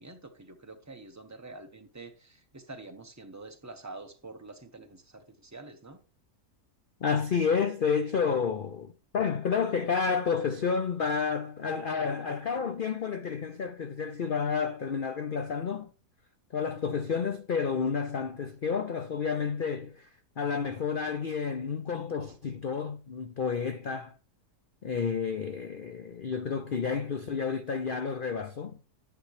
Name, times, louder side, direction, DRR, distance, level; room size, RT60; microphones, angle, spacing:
voice 1, 0.0-6.0, right 2 dB, 15° right, 0.7 m, -46 dB
voice 2, 7.0-15.9 16.5-20.1 20.4-24.1 24.8-28.8, left 6 dB, 55° left, 0.5 m, -30 dB
10.0 x 9.3 x 3.1 m
omnidirectional pair, 1.7 m